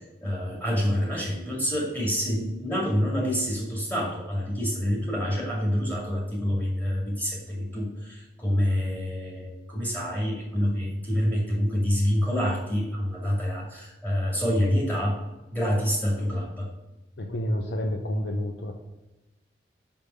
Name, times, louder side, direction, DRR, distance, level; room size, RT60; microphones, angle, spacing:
voice 1, 0.2-15.2 15.5-16.7, equal, 10° left, -3 dB, 2.2 m, -27 dB
voice 2, 17.2-18.7, equal, 80° left, 2 dB, 0.8 m, -29 dB
5.3 x 5.1 x 6.6 m, 1.0 s
head